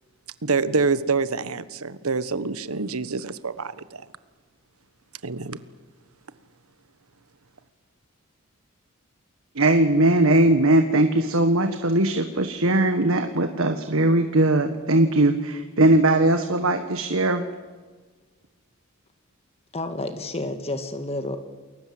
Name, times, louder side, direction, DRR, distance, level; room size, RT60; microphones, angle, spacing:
voice 1, 0.4-4.0 5.2-5.6, right 4 dB, 90° right, 14 dB, 1.3 m, -26 dB
voice 2, 9.6-17.4, right 1 dB, 70° right, 7 dB, 1.6 m, -20 dB
voice 3, 19.7-21.4, left 2 dB, 30° left, 8 dB, 1.7 m, -30 dB
29.5 x 21.5 x 7.9 m, 1.4 s
head